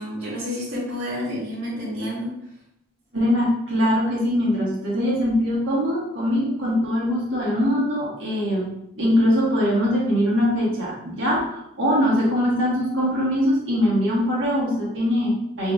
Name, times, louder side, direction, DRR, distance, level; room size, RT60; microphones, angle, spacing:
voice 1, 0.0-2.3, left 1 dB, 80° right, -10 dB, 1.3 m, -29 dB
voice 2, 3.1-15.7, equal, 65° right, -5 dB, 1.4 m, -22 dB
5.8 x 2.7 x 2.3 m, 0.80 s
head